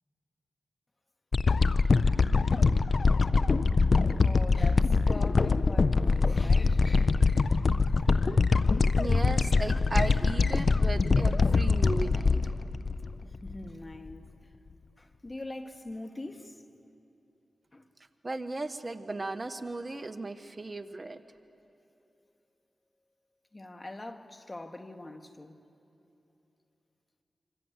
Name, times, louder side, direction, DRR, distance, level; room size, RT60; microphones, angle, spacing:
sound 1, 1.3-13.7 14.1-14.2, left 4 dB, 60° left, 0.7 m, -24 dB
voice 1, 3.9-7.2 13.4-14.3 15.0-16.6 17.7-17.9 23.5-25.6, left 2 dB, 35° left, 1.9 m, -43 dB
voice 2, 9.0-12.5 18.2-21.2, right 2 dB, 40° right, 1.2 m, -36 dB
27.5 x 26.0 x 8.2 m
cardioid pair, 40°, 0 cm